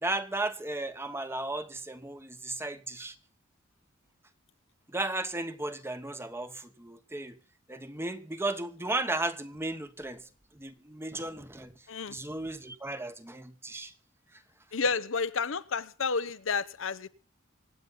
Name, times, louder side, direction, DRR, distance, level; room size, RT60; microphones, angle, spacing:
voice 1, 0.0-3.1 4.9-7.4 7.7-10.2 10.6-11.7 12.1-13.9, right 2 dB, 10° right, 1.1 m, -35 dB
voice 2, 14.7-17.1, left 5 dB, 70° left, 0.8 m, -30 dB
25.5 x 8.7 x 4.0 m
head